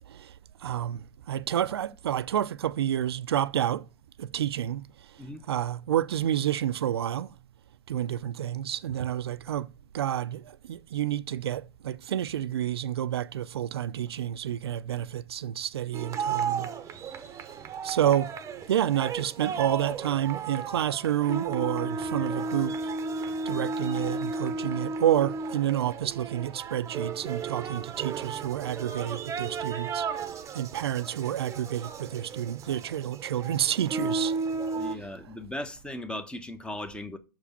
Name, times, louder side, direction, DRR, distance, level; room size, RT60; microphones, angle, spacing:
voice 1, 0.6-3.8 4.2-4.8 5.5-7.3 7.9-9.7 9.9-10.4 10.7-16.7 17.8-18.3 18.7-22.9 23.5-30.0 30.5-34.3, right 11 dB, 85° right, 0.5 m, -29 dB
sound 1, 15.9-34.9, right 4 dB, 25° right, 0.9 m, -34 dB
voice 2, 34.7-37.2, left 1 dB, 10° left, 1.0 m, -37 dB
6.2 x 5.1 x 6.8 m
hypercardioid pair, 110°, 13 cm